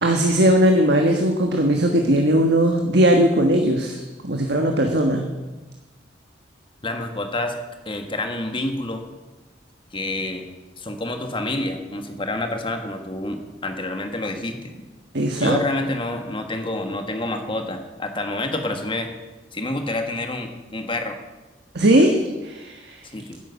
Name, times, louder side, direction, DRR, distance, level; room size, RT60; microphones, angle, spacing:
voice 1, 0.0-5.3 15.1-15.6 21.7-23.0, right 1 dB, 60° right, 3 dB, 1.4 m, -19 dB
voice 2, 6.8-7.6 7.9-9.0 9.9-10.5 10.8-14.6 15.4-19.1 19.5-21.2 23.1-23.4, left 2 dB, 30° left, 5 dB, 1.7 m, -28 dB
11.0 x 10.5 x 8.2 m, 1.1 s
head